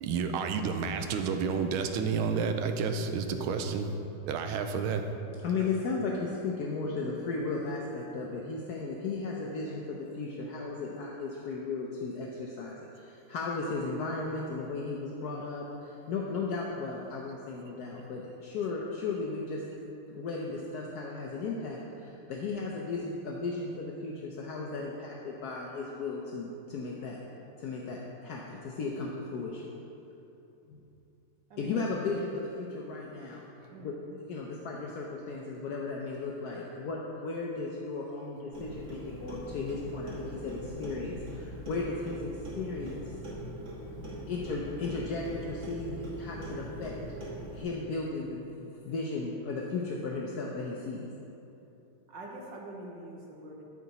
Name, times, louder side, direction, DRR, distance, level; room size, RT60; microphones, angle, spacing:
voice 1, 0.0-3.9 4.3-5.0 16.3-16.4 17.0-17.2, right 5 dB, 80° right, 6 dB, 1.5 m, -30 dB
voice 2, 5.4-19.6 20.1-27.2 27.6-29.7 30.7-30.8 31.6-33.5 33.8-33.9 34.3-43.1 44.0-47.0 47.5-51.1, left 3 dB, 70° left, -2 dB, 0.9 m, -35 dB
voice 3, 31.5-31.9 33.7-34.0 52.1-53.6, right 2 dB, 65° right, -1 dB, 1.4 m, -44 dB
Clock, 38.5-47.6, equal, 40° right, 1.5 m, -41 dB
13.0 x 4.9 x 4.1 m, 2.9 s
omnidirectional pair, 2.3 m